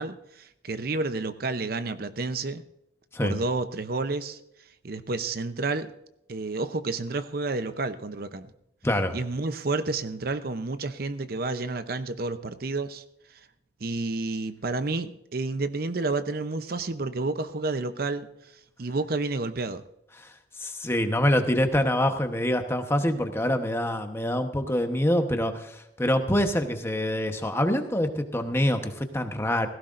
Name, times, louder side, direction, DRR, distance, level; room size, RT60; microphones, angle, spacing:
voice 1, 0.0-2.6 3.2-4.4 4.8-5.9 6.3-8.5 9.1-13.0 13.3-13.4 13.8-18.3 18.8-19.8, right 3 dB, 55° right, 11 dB, 0.7 m, -30 dB
voice 2, 8.8-9.2 20.6-29.7, left 1 dB, 15° left, 6 dB, 1.0 m, -25 dB
17.5 x 15.5 x 2.6 m, 0.78 s
head